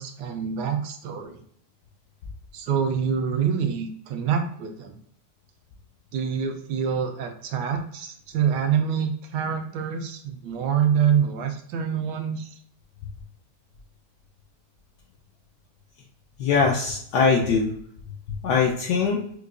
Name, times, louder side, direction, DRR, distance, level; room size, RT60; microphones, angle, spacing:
voice 1, 0.0-1.4 2.5-4.9 6.1-12.5, right 7 dB, 80° right, 5 dB, 1.2 m, -26 dB
voice 2, 16.4-17.7 18.4-19.2, left 5 dB, 75° left, -2 dB, 1.1 m, -21 dB
4.6 x 2.2 x 2.4 m, 0.64 s
omnidirectional pair, 1.9 m